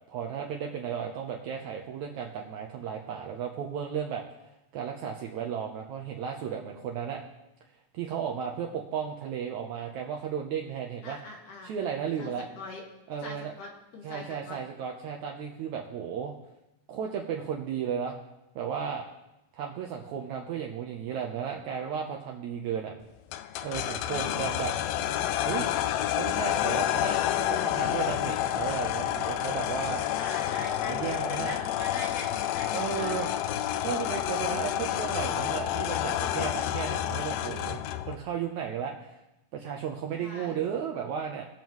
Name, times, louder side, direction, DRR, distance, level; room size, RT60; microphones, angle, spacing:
voice 1, 0.1-4.2 4.7-7.2 7.9-11.2 11.6-12.5 13.1-13.5 14.0-16.3 16.9-18.2 18.5-19.1 19.5-22.9 23.6-24.7 25.5-25.7 26.2-30.0 30.9-31.6 32.7-33.3 33.8-37.8 38.1-39.2 39.5-41.4, right 7 dB, 80° right, 1 dB, 1.7 m, -34 dB
voice 2, 11.0-11.8 12.2-12.8 13.2-14.6 24.1-24.5 30.2-33.6 40.2-40.6, left 3 dB, 60° left, -1 dB, 3.1 m, -42 dB
sound 1, 23.3-38.2, left 12 dB, 85° left, 2.3 m, -29 dB
20.5 x 7.3 x 3.1 m, 0.93 s
omnidirectional pair, 4.3 m